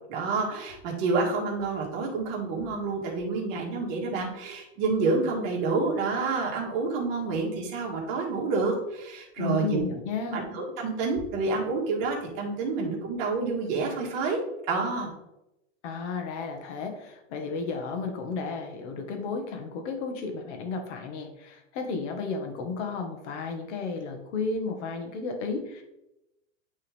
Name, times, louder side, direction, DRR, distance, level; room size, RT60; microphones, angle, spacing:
voice 1, 0.1-9.8 10.3-14.4 14.7-15.1, right 4 dB, 50° right, -1 dB, 1.9 m, -28 dB
voice 2, 9.4-10.4 15.8-25.8, left 4 dB, 65° left, 5 dB, 1.5 m, -33 dB
8.6 x 3.7 x 3.5 m, 0.90 s
supercardioid pair, 155°, 38 cm